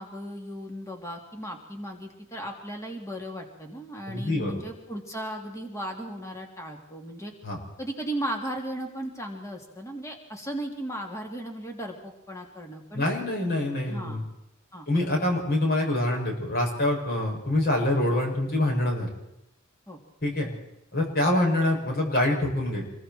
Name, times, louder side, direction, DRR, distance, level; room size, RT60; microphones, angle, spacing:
voice 1, 0.0-7.3 7.8-13.0 13.8-14.2 14.7-14.9 19.9-20.0 21.2-21.4, right 1 dB, 15° left, 1 dB, 3.2 m, -36 dB
voice 2, 4.1-4.6 7.4-7.6 12.9-14.2 14.9-19.1 20.2-20.5 20.9-22.9, left 1 dB, 50° left, 0 dB, 7.1 m, -25 dB
28.0 x 22.5 x 4.6 m, 0.88 s
head